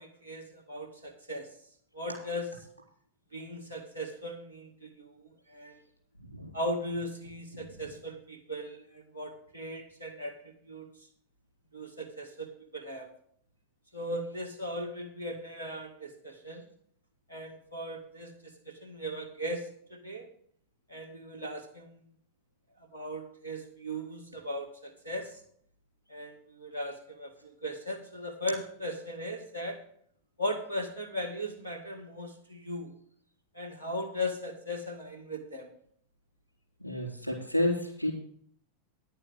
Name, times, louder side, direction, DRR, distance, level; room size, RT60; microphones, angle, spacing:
voice 1, 0.0-1.5 1.9-2.5 3.3-5.1 5.5-5.8 6.5-10.9 11.7-13.1 13.9-16.6 17.3-18.3 18.7-20.3 20.9-22.0 22.9-25.4 26.1-29.8 30.4-32.9 33.5-35.7, equal, 85° left, 4 dB, 1.9 m, -38 dB
voice 2, 36.8-38.1, left 1 dB, 90° right, 1 dB, 3.5 m, -30 dB
10.5 x 6.8 x 6.4 m, 0.63 s
figure-of-eight pair, 90°, 0 cm